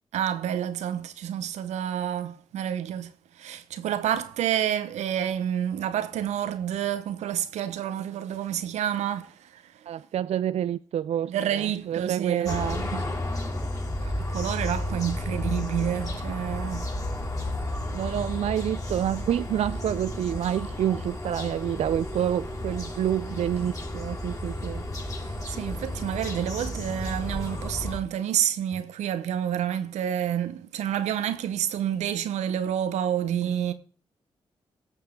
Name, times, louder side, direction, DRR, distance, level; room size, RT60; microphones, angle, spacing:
voice 1, 0.1-9.9 11.3-12.6 14.0-16.9 25.5-33.7, right 10 dB, 85° right, 0.9 m, -29 dB
voice 2, 9.9-13.1 17.9-24.8, right 10 dB, 70° right, 0.4 m, -28 dB
sound 1, 12.5-28.0, left 1 dB, 30° left, 3.7 m, -32 dB
16.5 x 6.8 x 3.8 m
supercardioid pair, 45°, 11 cm